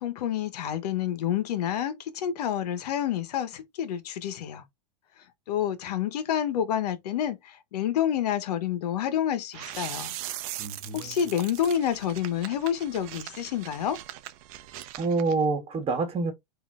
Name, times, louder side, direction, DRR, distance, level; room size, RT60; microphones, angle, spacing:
voice 1, 0.0-4.6 5.5-10.1 10.9-14.0, left 10 dB, 70° left, 1.2 m, -28 dB
sound 1, 9.5-15.3, right 14 dB, 55° right, 0.7 m, -40 dB
voice 2, 10.6-11.3 15.0-16.3, right 4 dB, 25° right, 1.7 m, -27 dB
3.9 x 2.9 x 3.7 m
hypercardioid pair, 110°, 21 cm